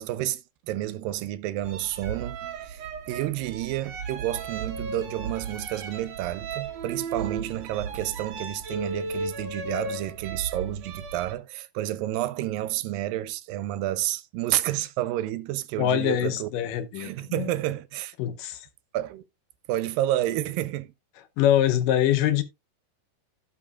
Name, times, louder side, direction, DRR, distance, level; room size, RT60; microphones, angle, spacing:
voice 1, 0.0-2.8 3.1-16.5 17.0-18.1 18.9-19.2 19.7-20.9, right 14 dB, 90° right, 2.4 m, -30 dB
sound 1, 1.6-11.3, right 4 dB, 60° right, 2.0 m, -35 dB
voice 2, 15.8-17.5 18.2-18.7 21.4-22.4, left 11 dB, 75° left, 2.3 m, -24 dB
16.0 x 5.4 x 2.4 m
omnidirectional pair, 4.0 m